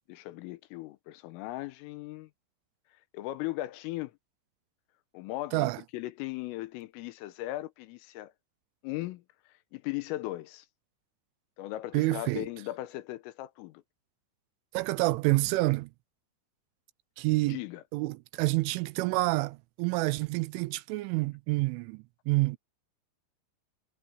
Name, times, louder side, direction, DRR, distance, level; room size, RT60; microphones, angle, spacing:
voice 1, 0.1-2.3 3.1-4.1 5.1-8.3 8.8-9.2 9.7-10.7 11.6-13.8 17.5-17.8, left 17 dB, 85° left, 3.7 m, -38 dB
voice 2, 11.9-12.5 14.7-15.9 17.2-17.6 17.9-22.6, right 21 dB, 80° right, 3.0 m, -28 dB
omnidirectional pair, 5.8 m